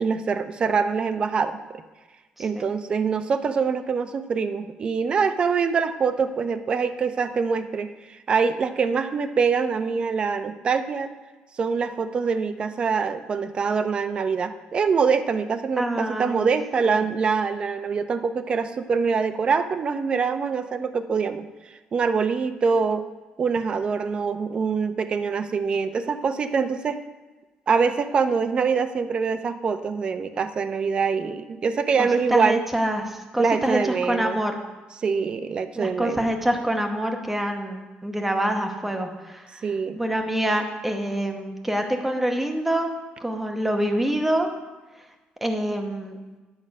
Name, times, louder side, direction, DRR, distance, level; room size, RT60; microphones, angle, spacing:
voice 1, 0.0-1.8 2.4-11.1 11.6-21.5 21.9-23.0 23.4-27.0 27.7-32.6 33.4-34.4 35.0-36.3 39.6-40.0, right 5 dB, 35° right, 9 dB, 0.6 m, -24 dB
voice 2, 15.8-16.4 16.9-17.0 32.0-34.6 35.8-39.7 40.0-42.9 43.2-44.5 45.4-46.2, right 1 dB, 5° right, 3 dB, 1.0 m, -26 dB
10.5 x 6.3 x 5.3 m, 1.2 s
cardioid pair, 155°, 3 cm